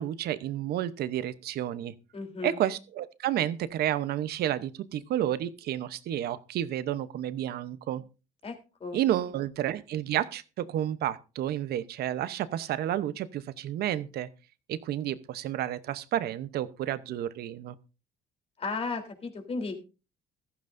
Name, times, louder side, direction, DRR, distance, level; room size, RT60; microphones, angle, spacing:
voice 1, 0.0-1.9 2.4-8.0 8.9-14.3 14.7-17.8, right 12 dB, 70° right, 0.9 m, -31 dB
voice 2, 2.1-2.6 8.4-8.6 8.8-9.0 18.6-19.8, left 3 dB, 35° left, 3.5 m, -34 dB
14.5 x 14.5 x 2.6 m
cardioid pair, 110°, 17 cm